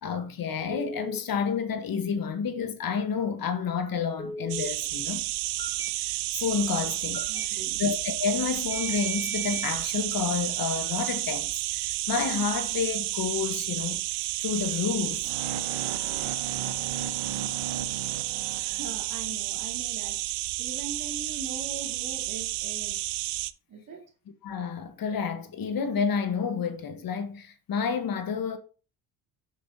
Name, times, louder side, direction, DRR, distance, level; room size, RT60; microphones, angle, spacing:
voice 1, 0.0-5.2 6.0-7.2 7.5-14.0 14.4-15.2 24.4-28.6, left 6 dB, 50° left, 1.2 m, -30 dB
Telephone, 0.7-1.2 4.2-4.7 5.6-5.9 7.1-7.4 8.7-9.7, right 1 dB, 10° left, 1.2 m, -37 dB
sound 1, 4.5-23.5, right 17 dB, 65° right, 0.6 m, -31 dB
voice 2, 7.3-7.8 18.6-20.2 20.6-23.0 23.7-24.0, right 4 dB, 45° right, 2.3 m, -41 dB
sound 2, 15.2-19.3, right 7 dB, 85° right, 1.1 m, -37 dB
7.6 x 6.7 x 2.7 m
supercardioid pair, 80°, 45 cm